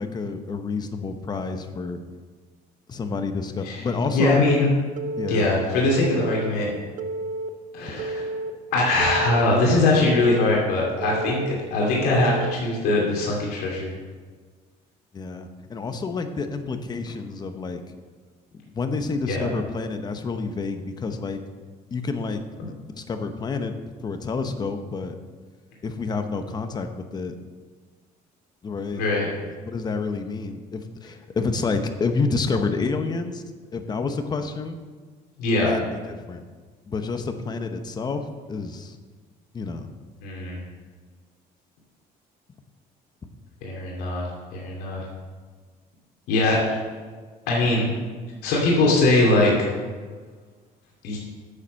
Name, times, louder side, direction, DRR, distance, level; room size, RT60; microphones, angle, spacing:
voice 1, 0.0-2.0 2.9-4.4 5.2-5.4 15.1-17.8 18.7-21.4 21.9-22.4 22.9-23.8 24.0-25.1 25.8-27.3 28.6-29.0 29.6-33.4 33.7-34.8 35.6-36.4 36.9-39.0 39.5-39.9, left 4 dB, 25° left, 7 dB, 0.8 m, -28 dB
voice 2, 3.6-4.7 5.3-6.7 7.7-8.3 8.7-13.9 19.3-19.5 22.6-22.7 28.9-29.3 35.4-35.7 40.2-40.6 43.6-44.3 44.5-45.0 46.3-46.6 47.5-48.0 48.4-49.5 51.0-51.2, left 2 dB, 85° left, -3 dB, 2.6 m, -21 dB
Telephone, 5.0-5.5 6.0-6.5 7.0-7.5 8.0-8.5 9.0-9.5 10.0-10.5 11.0-11.5 12.0-12.5, right 2 dB, 55° right, 0.7 m, -30 dB
9.7 x 7.2 x 6.3 m, 1.5 s
cardioid pair, 140°, 16 cm